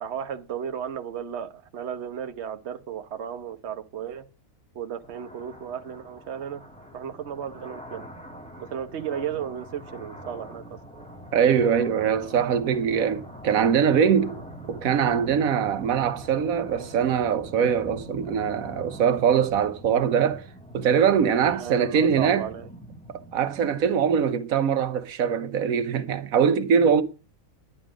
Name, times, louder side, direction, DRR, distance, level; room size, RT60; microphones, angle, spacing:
voice 1, 0.0-4.2 4.7-6.6 6.9-8.1 8.6-10.8 21.4-22.7, right 8 dB, 55° right, 1.1 m, -34 dB
sound 1, 5.0-24.2, equal, 5° left, 2.0 m, -43 dB
voice 2, 11.3-14.3 14.7-20.5 20.7-22.5 23.1-27.0, right 7 dB, 85° right, 1.2 m, -22 dB
11.0 x 10.0 x 5.0 m
omnidirectional pair, 1.4 m